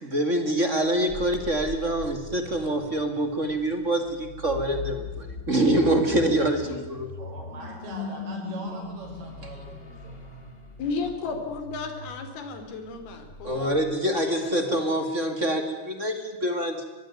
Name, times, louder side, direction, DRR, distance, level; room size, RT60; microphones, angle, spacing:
voice 1, 0.1-7.1 13.4-16.8, right 1 dB, 25° right, 6 dB, 1.8 m, -25 dB
sound 1, 0.9-14.3, left 3 dB, 25° left, 1.2 m, -40 dB
voice 2, 7.2-10.4 14.4-15.0, right 3 dB, 80° right, -1 dB, 7.6 m, -43 dB
voice 3, 10.8-13.8 14.1-14.6, left 4 dB, 80° left, 7 dB, 4.9 m, -34 dB
24.0 x 20.5 x 9.5 m, 1.1 s
omnidirectional pair, 4.4 m